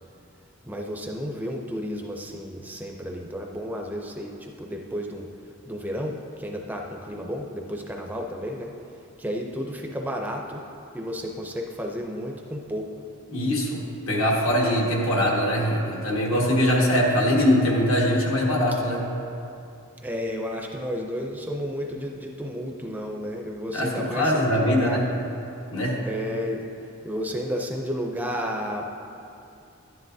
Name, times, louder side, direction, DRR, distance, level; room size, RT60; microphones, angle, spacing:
voice 1, 0.7-5.3 5.7-8.7 9.2-10.6 10.9-12.9 20.0-25.0 26.0-26.6 27.0-28.9, equal, 10° right, 1 dB, 0.5 m, -32 dB
voice 2, 13.3-19.0 23.7-25.0 25.7-25.9, equal, 75° left, -2 dB, 1.6 m, -22 dB
11.5 x 9.8 x 2.7 m, 2.7 s
head